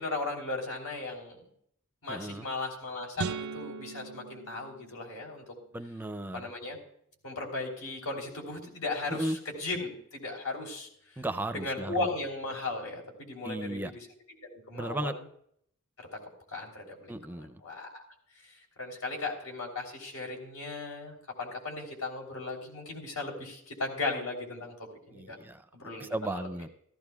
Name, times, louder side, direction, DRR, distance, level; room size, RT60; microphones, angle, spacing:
voice 1, 0.0-1.4 2.0-5.4 6.3-6.8 7.2-10.9 11.1-11.2 11.5-14.1 14.4-15.2 16.5-18.0 18.4-25.4 25.7-26.5, left 3 dB, 85° left, 0 dB, 3.4 m, -37 dB
voice 2, 2.1-2.5 5.7-6.5 9.1-9.4 11.2-12.1 13.4-13.9 14.7-15.1 17.1-17.6 25.1-26.7, right 1 dB, 10° right, 10 dB, 0.4 m, -35 dB
sound 1, 3.2-5.5, right 5 dB, 80° right, 0.5 m, -39 dB
15.5 x 14.0 x 2.3 m, 0.67 s
head